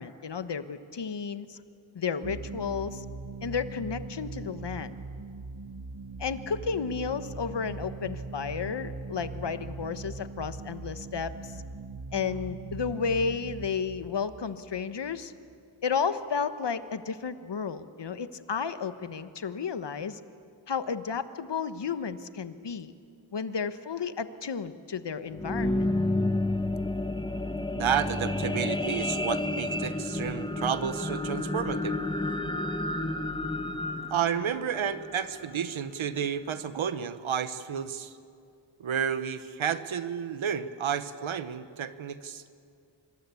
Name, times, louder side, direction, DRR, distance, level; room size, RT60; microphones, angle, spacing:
voice 1, 0.0-1.6 1.9-3.0 3.4-4.9 6.2-11.6 12.1-15.3 15.8-20.2 20.7-22.9 23.3-25.9, left 6 dB, 60° left, 11 dB, 1.4 m, -32 dB
sound 1, 2.2-15.5, right 3 dB, 45° right, 1.8 m, -41 dB
sound 2, 25.2-35.6 36.2-36.3, left 2 dB, 10° left, 1.3 m, -30 dB
voice 2, 27.7-32.0 34.1-38.1 38.8-42.6, right 8 dB, 85° right, 12 dB, 1.2 m, -31 dB
25.5 x 21.5 x 8.5 m, 2.3 s
cardioid pair, 55°, 46 cm